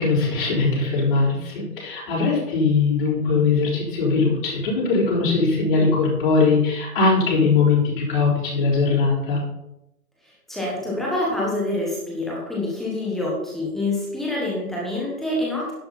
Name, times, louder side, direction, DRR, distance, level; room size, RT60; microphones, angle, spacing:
voice 1, 0.0-9.4, left 4 dB, 30° left, -5 dB, 4.4 m, -20 dB
voice 2, 10.2-15.7, left 2 dB, ahead, -5 dB, 1.2 m, -26 dB
10.5 x 10.5 x 4.2 m, 0.86 s
figure-of-eight pair, 155°, 48 cm